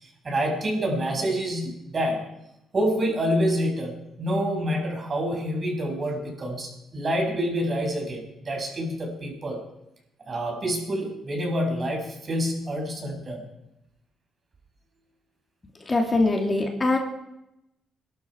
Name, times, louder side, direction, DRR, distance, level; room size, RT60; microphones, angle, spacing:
voice 1, 0.0-2.2 2.7-9.6 10.3-13.4, equal, 40° right, 2 dB, 6.0 m, -27 dB
voice 2, 15.8-17.0, left 2 dB, 25° left, 2 dB, 2.9 m, -23 dB
22.0 x 12.5 x 4.7 m, 0.87 s
cardioid pair, 90°, 0 cm